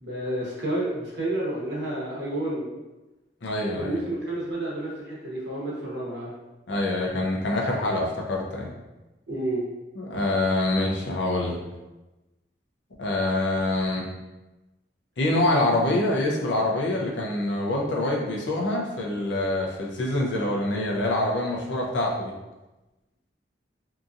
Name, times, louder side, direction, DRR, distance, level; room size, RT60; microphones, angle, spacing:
voice 1, 0.0-2.7 3.7-6.3 9.3-9.6, right 1 dB, 75° right, -5 dB, 1.0 m, -30 dB
voice 2, 3.4-4.0 6.7-8.7 10.0-11.6 13.0-14.1 15.2-22.3, left 1 dB, 80° left, -2 dB, 0.6 m, -25 dB
2.8 x 2.5 x 2.4 m, 1.1 s
head